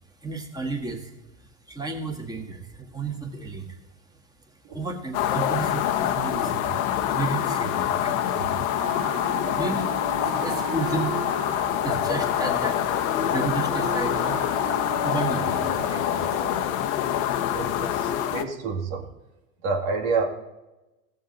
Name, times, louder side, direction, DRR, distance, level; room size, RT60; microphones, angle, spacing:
voice 1, 0.2-1.1 1.4-3.8 4.7-8.7 9.0-11.2 11.8-14.4 15.0-16.4, right 3 dB, 10° right, 3 dB, 1.7 m, -33 dB
sound 1, 5.1-18.4, left 10 dB, 65° left, 1.0 m, -25 dB
Wind instrument woodwind instrument, 8.7-16.8, right 4 dB, 30° right, 1.5 m, -37 dB
voice 2, 17.5-19.1 19.6-20.3, right 4 dB, 70° right, 2 dB, 2.2 m, -28 dB
15.5 x 6.8 x 4.0 m, 1.0 s
hypercardioid pair, 105°, 43 cm